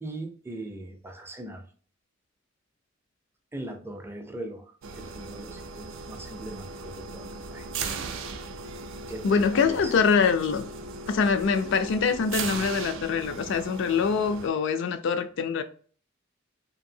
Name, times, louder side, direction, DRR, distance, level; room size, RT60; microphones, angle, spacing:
voice 1, 0.0-1.7 3.5-7.7 9.1-9.9, right 1 dB, 10° right, 0.4 m, -40 dB
sound 1, 4.8-14.5, right 4 dB, 75° right, 0.4 m, -37 dB
voice 2, 9.2-10.7 11.1-15.6, left 5 dB, 65° left, 0.3 m, -24 dB
2.8 x 2.6 x 2.6 m
head